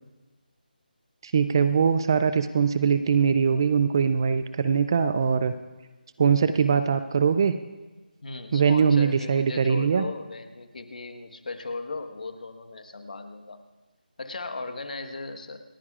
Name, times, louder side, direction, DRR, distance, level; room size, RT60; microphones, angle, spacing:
voice 1, 1.2-5.5 6.2-7.6 8.5-10.1, right 6 dB, 25° right, 11 dB, 0.4 m, -22 dB
voice 2, 8.2-13.6 14.2-15.6, left 3 dB, 55° left, 8 dB, 1.3 m, -37 dB
28.0 x 9.6 x 2.4 m, 1.2 s
figure-of-eight pair, 160°, 5 cm